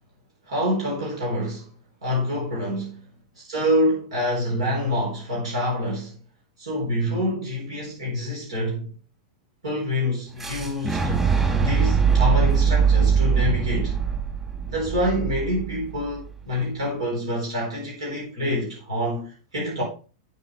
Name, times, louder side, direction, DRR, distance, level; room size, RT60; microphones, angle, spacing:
voice 1, 0.5-1.7 2.0-3.0 3.4-6.2 6.6-8.9 9.6-14.0 14.7-19.8, left 1 dB, 90° right, 4.0 m, -26 dB
Boom, 10.4-16.3, right 6 dB, 15° right, 3.9 m, -22 dB
9.2 x 7.0 x 3.2 m
hypercardioid pair, 110°, 3 cm